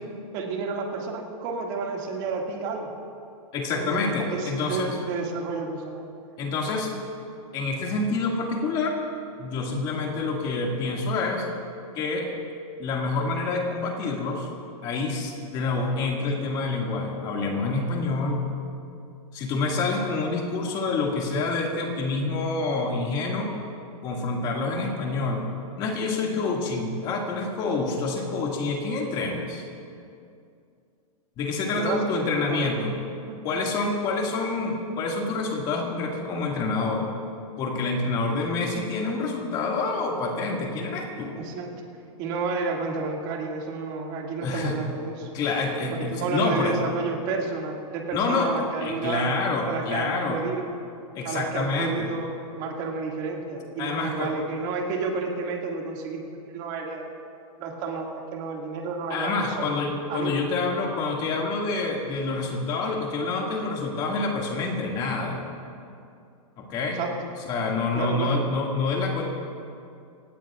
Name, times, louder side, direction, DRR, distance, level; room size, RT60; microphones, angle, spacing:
voice 1, 0.3-2.9 3.7-4.0 4.3-6.0 31.8-32.2 32.5-32.9 33.3-33.4 41.3-41.7 42.2-45.3 45.9-49.3 49.7-50.6 51.2-56.3 56.5-57.0 57.6-59.6 60.1-60.4 66.9-67.3 67.9-68.5, right 4 dB, 30° right, 0 dB, 2.2 m, -31 dB
voice 2, 3.5-5.0 6.4-6.9 7.5-9.0 9.4-11.5 12.0-12.3 12.8-14.5 14.8-18.4 19.3-23.5 24.0-25.5 25.8-29.6 31.4-32.9 33.4-37.1 37.6-41.4 44.4-44.8 45.3-46.7 48.1-48.5 48.8-50.4 51.1-52.1 53.8-54.3 59.1-65.4 66.6-67.0 67.5-69.3, left 3 dB, 25° left, 0 dB, 2.1 m, -27 dB
26.5 x 17.5 x 2.5 m, 2.4 s
hypercardioid pair, 170°, 19 cm